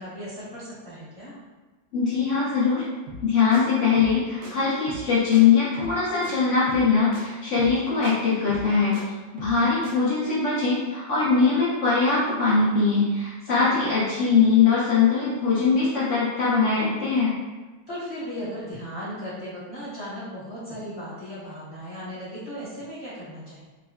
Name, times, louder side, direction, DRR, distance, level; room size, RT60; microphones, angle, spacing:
voice 1, 0.0-1.4 13.5-13.9 17.9-23.7, equal, 15° left, -13 dB, 0.8 m, -36 dB
voice 2, 1.9-2.8 3.2-9.0 9.4-17.3, left 5 dB, 75° left, -8 dB, 0.6 m, -21 dB
sound 1, 3.1-3.3 3.5-3.6 4.0-4.2 4.4-4.5 4.9-5.1 5.3-5.4 5.8-6.0 6.2-6.3 6.7-6.9 7.1-7.2 7.6-7.8 8.0-8.1 8.5-9.0 9.4-9.6 9.8-9.9, right 1 dB, 90° right, 0.7 m, -39 dB
3.6 x 2.1 x 2.3 m, 1.3 s
omnidirectional pair, 2.1 m